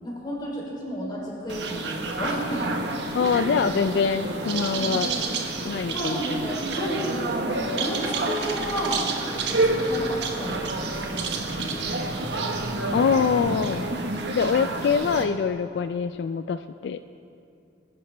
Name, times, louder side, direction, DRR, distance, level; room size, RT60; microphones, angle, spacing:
voice 1, 0.0-2.7 3.2-3.5 5.9-9.1 9.4-11.9, equal, 25° left, -4 dB, 3.3 m, -32 dB
sound 1, 1.5-15.2, right 2 dB, 75° right, 1.2 m, -29 dB
voice 2, 3.1-5.1 5.6-6.5 12.9-13.9 14.3-17.0, left 6 dB, 75° left, 10 dB, 0.3 m, -24 dB
22.0 x 11.0 x 3.3 m, 2.6 s
head